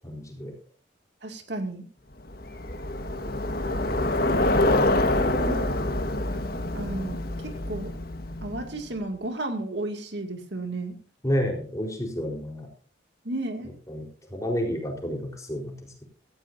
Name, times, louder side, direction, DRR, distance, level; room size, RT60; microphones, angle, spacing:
voice 1, 0.0-0.5 5.1-6.2 11.2-12.7 13.9-16.0, equal, 15° left, 1 dB, 4.3 m, -31 dB
voice 2, 1.2-1.9 5.4-5.7 6.7-7.9 8.4-11.0 13.2-13.7, right 2 dB, 65° right, 5 dB, 2.4 m, -33 dB
Bicycle, 2.3-8.8, left 1 dB, 50° left, 1.5 m, -26 dB
17.0 x 14.5 x 2.7 m, 0.43 s
head